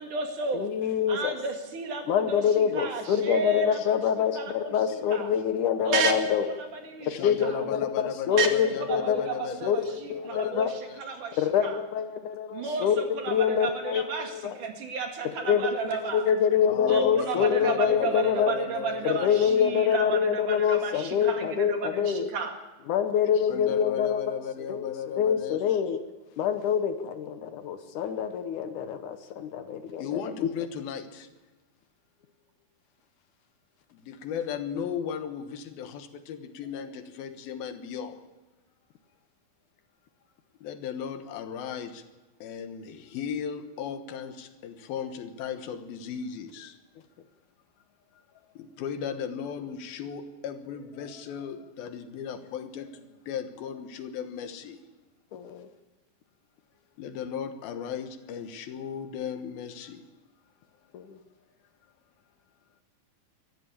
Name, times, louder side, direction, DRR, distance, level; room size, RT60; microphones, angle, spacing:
voice 1, 0.0-0.7 1.1-4.0 4.3-5.3 5.8-6.2 6.6-7.1 7.4-7.6 8.3-11.8 12.5-16.3 16.9-22.6, right 4 dB, 60° right, 3.5 m, -32 dB
voice 2, 0.5-1.4 2.1-6.5 7.1-10.7 11.4-14.6 15.5-18.5 19.1-22.3 22.9-24.4 24.7-26.0 26.4-30.5 55.3-55.7 60.9-61.2, left 8 dB, 70° left, 2.3 m, -26 dB
voice 3, 7.0-11.0 16.6-19.5 23.5-25.8 30.0-31.3 33.9-38.2 40.6-42.0 42.4-46.8 48.5-54.8 57.0-60.1, left 8 dB, 85° left, 3.2 m, -36 dB
23.5 x 13.5 x 8.7 m
omnidirectional pair, 4.1 m